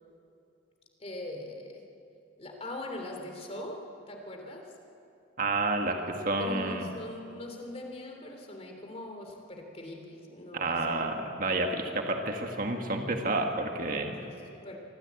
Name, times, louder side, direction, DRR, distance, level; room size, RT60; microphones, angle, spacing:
voice 1, 1.0-1.9 2.4-4.7 5.9-6.1 6.4-10.9 14.1-14.8, left 1 dB, 35° left, 3 dB, 3.0 m, -41 dB
voice 2, 5.4-6.0 6.2-6.9 10.5-14.1, right 2 dB, 45° right, 3 dB, 1.8 m, -30 dB
25.0 x 15.5 x 8.4 m, 2.7 s
head